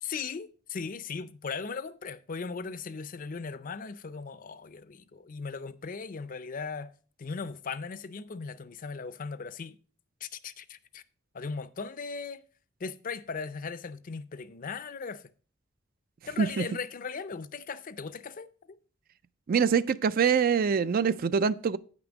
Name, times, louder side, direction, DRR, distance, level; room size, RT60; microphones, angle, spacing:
voice 1, 0.0-6.9 7.2-9.8 10.2-11.0 11.3-12.4 12.8-15.2 16.3-18.8, left 5 dB, 40° left, 0.5 m, -38 dB
voice 2, 19.5-21.8, right 6 dB, 45° right, 0.3 m, -24 dB
9.2 x 6.0 x 5.1 m
head